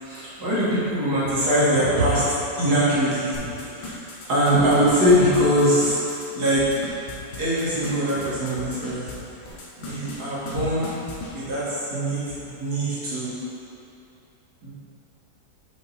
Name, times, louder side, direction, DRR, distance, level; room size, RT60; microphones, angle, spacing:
voice 1, 0.0-2.2 2.6-4.0 4.3-6.0 6.3-6.6 7.4-9.1 9.8-10.9 11.3-13.3 14.6-14.7, equal, 60° right, -10 dB, 2.3 m, -22 dB
sound 1, 3.3-9.1 9.4-10.2 10.5-10.6 10.8-11.3, left 3 dB, 70° left, 1.7 m, -37 dB
5.9 x 5.5 x 4.1 m, 2.8 s
omnidirectional pair, 2.0 m